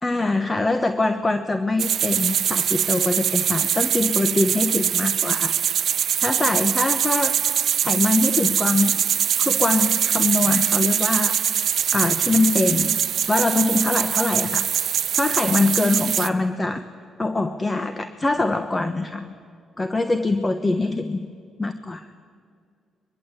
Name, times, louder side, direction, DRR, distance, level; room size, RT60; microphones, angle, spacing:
voice 1, 0.0-5.5 6.2-7.3 7.8-9.0 9.4-11.4 11.9-13.0 13.3-14.7 15.2-16.8 17.2-19.3 19.8-21.3 21.6-22.1, left 2 dB, 20° left, 9 dB, 1.1 m, -23 dB
sound 1, 1.8-16.3, right 9 dB, 65° right, 0.8 m, -23 dB
23.0 x 22.0 x 8.3 m, 2.2 s
cardioid pair, 90°, 0 cm